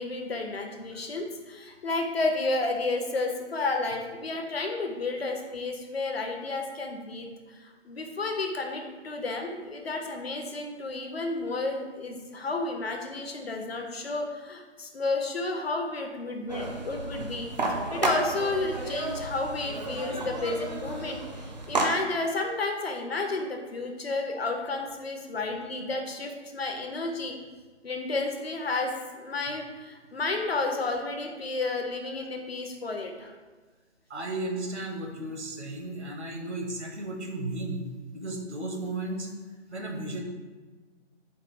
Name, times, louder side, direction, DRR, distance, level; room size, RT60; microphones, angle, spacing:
voice 1, 0.0-27.3 27.8-33.3, left 3 dB, 55° left, 3 dB, 0.7 m, -32 dB
sound 1, 16.5-21.9, right 2 dB, 40° right, 0.5 m, -32 dB
voice 2, 34.1-39.3 39.7-40.2, right 2 dB, 70° right, 2 dB, 1.0 m, -34 dB
4.8 x 2.3 x 4.7 m, 1.3 s
figure-of-eight pair, 145°, 36 cm